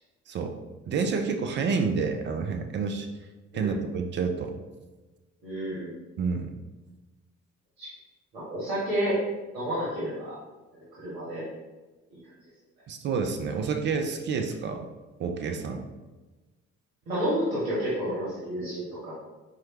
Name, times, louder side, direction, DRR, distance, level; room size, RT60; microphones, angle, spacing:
voice 1, 0.9-3.1 3.5-4.5 6.2-6.5 12.9-14.9 15.2-15.8, right 5 dB, 30° right, 5 dB, 0.4 m, -29 dB
voice 2, 5.4-5.9 7.8-7.9 8.3-9.2 9.5-10.4 11.0-11.4 12.1-12.2 17.1-19.2, equal, 70° right, -8 dB, 1.0 m, -30 dB
4.4 x 2.3 x 3.0 m, 1.2 s
figure-of-eight pair, 45°, 40 cm